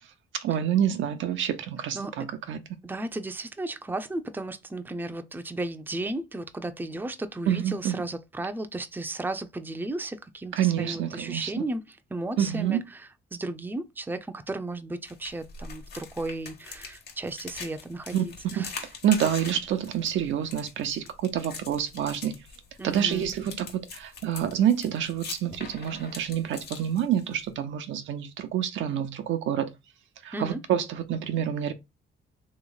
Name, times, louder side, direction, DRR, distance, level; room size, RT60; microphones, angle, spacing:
voice 1, 0.4-2.6 7.5-8.0 10.5-11.5 12.4-12.8 18.1-18.2 18.6-18.7 19.0-22.4 22.8-29.7 30.2-31.7, right 9 dB, 75° right, 0.7 m, -27 dB
voice 2, 2.8-18.8 22.8-23.3 30.3-30.6, right 2 dB, 10° right, 0.5 m, -34 dB
sound 1, 15.0-27.5, left 5 dB, 55° left, 1.3 m, -43 dB
3.1 x 3.0 x 3.9 m
cardioid pair, 90°, 20 cm